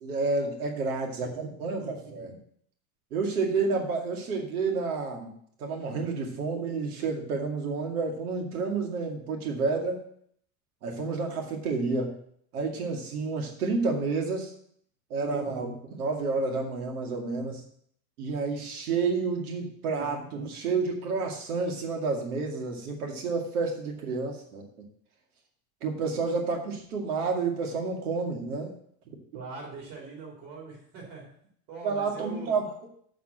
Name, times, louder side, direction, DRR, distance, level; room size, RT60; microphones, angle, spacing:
voice 1, 0.0-2.4 3.1-5.3 5.6-10.0 10.8-12.1 12.5-14.5 15.1-17.6 18.2-24.7 25.8-28.7 29.1-29.2 31.8-32.6, right 4 dB, 90° right, 2 dB, 2.3 m, -30 dB
voice 2, 29.3-31.3 31.7-32.6, right 4 dB, 65° right, -3 dB, 4.1 m, -42 dB
6.8 x 5.8 x 7.5 m, 0.65 s
supercardioid pair, 105°, 43 cm